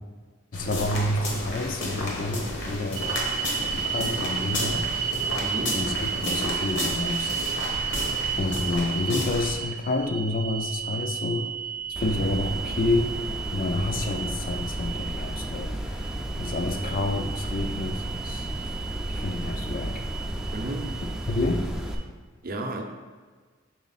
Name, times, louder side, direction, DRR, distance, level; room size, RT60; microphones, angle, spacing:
sound 1, 0.5-9.5, left 1 dB, 65° left, 1.1 m, -32 dB
voice 1, 0.5-3.1 3.7-4.9 5.7-7.3 8.4-11.5 11.9-13.1 13.5-16.1 16.4-18.5 19.1-20.0 21.3-21.7, left 2 dB, 45° left, 6 dB, 0.5 m, -29 dB
sound 2, 2.9-22.0, right 8 dB, 85° right, 0.5 m, -33 dB
voice 2, 5.4-5.8 20.5-20.9 22.4-22.8, right 2 dB, 45° right, 3 dB, 0.7 m, -32 dB
sound 3, 12.0-22.0, equal, 5° right, 0.5 m, -33 dB
6.3 x 3.9 x 4.1 m, 1.5 s
head